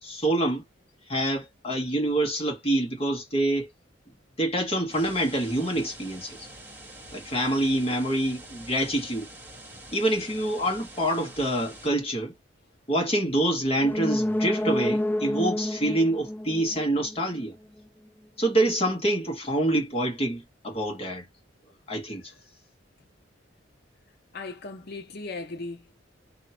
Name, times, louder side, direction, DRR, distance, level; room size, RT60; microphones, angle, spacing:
voice 1, 0.0-0.6 1.1-3.7 4.4-6.5 7.1-9.3 9.9-12.3 12.9-17.5 18.4-21.3 21.9-22.3, right 1 dB, 30° left, 1.6 m, -26 dB
sound 1, 4.9-11.9, right 1 dB, 10° right, 1.8 m, -46 dB
sound 2, 13.8-17.5 17.8-17.9, left 1 dB, 10° left, 0.3 m, -29 dB
voice 2, 24.3-26.0, left 3 dB, 55° left, 0.8 m, -37 dB
3.2 x 2.8 x 4.3 m
head